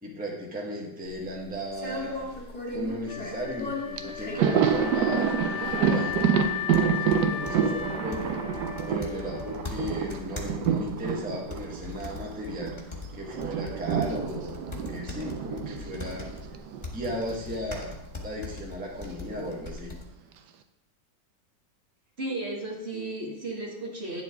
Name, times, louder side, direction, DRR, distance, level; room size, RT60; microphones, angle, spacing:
voice 1, 0.0-2.2 2.7-6.2 7.0-8.4 8.9-12.7 13.1-14.6 14.9-16.3 16.9-17.9 18.2-19.9, equal, 5° right, -3 dB, 1.3 m, -35 dB
sound 1, 1.1-20.0, left 2 dB, 25° left, 1.6 m, -40 dB
Wind instrument woodwind instrument, 3.1-10.1, left 10 dB, 80° left, 1.2 m, -36 dB
Thunder, 3.6-3.7 4.0-12.8 13.1-17.4 17.6-17.8 19.0-19.7, right 7 dB, 75° right, 1.3 m, -28 dB
voice 2, 22.2-24.2, right 2 dB, 40° right, -3 dB, 1.7 m, -34 dB
10.0 x 7.6 x 3.6 m, 0.89 s
omnidirectional pair, 1.9 m